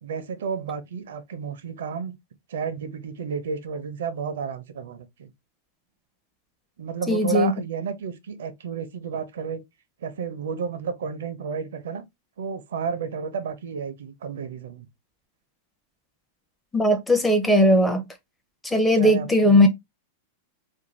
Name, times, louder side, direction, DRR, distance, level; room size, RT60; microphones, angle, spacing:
voice 1, 0.0-2.2 2.5-5.3 6.8-9.6 10.0-12.0 12.4-14.9 19.0-19.7, right 6 dB, 85° right, 0.6 m, -32 dB
voice 2, 7.1-7.5 16.7-18.0 18.6-19.7, left 1 dB, 5° left, 0.5 m, -18 dB
2.6 x 2.2 x 3.0 m
supercardioid pair, 145°, 0 cm